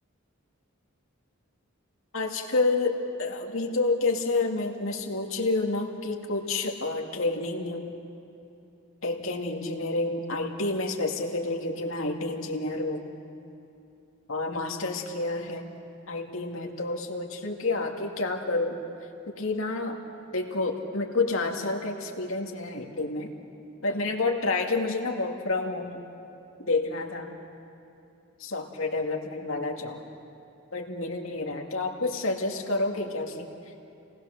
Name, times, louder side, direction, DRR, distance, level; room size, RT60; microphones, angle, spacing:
voice 1, 2.1-7.9 9.0-13.1 14.3-15.7 16.1-18.8 19.4-20.0 20.3-23.3 23.8-26.0 26.6-27.3 28.4-30.0 30.7-33.5, left 3 dB, 70° left, 2 dB, 2.1 m, -29 dB
28.5 x 19.5 x 6.6 m, 2.8 s
head